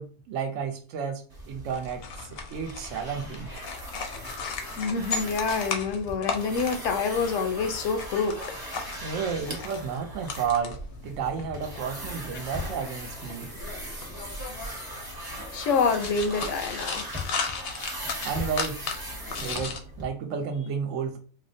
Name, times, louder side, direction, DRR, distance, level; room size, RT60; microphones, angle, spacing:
voice 1, 0.0-3.5 9.0-10.8 11.0-13.5 18.2-18.9 19.4-21.2, right 6 dB, 90° right, 5 dB, 1.0 m, -32 dB
sound 1, 1.3-20.1, equal, 20° right, 0.6 m, -39 dB
sound 2, 1.7-19.8, left 5 dB, 60° left, 0.7 m, -37 dB
voice 2, 4.8-8.9 15.5-17.1, left 5 dB, 80° left, 7 dB, 1.0 m, -27 dB
4.2 x 2.0 x 2.6 m, 0.39 s
omnidirectional pair, 1.3 m